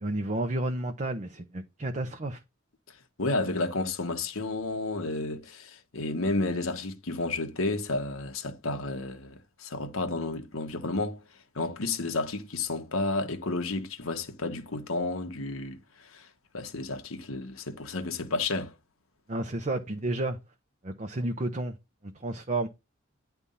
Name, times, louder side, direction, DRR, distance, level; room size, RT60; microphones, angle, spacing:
voice 1, 0.0-2.4 19.3-20.4 20.8-21.8 22.0-22.7, right 2 dB, 35° right, 0.8 m, -31 dB
voice 2, 3.2-11.2 11.5-15.8 16.1-16.3 16.5-18.7, left 2 dB, 80° left, 1.3 m, -31 dB
9.8 x 3.5 x 5.5 m
head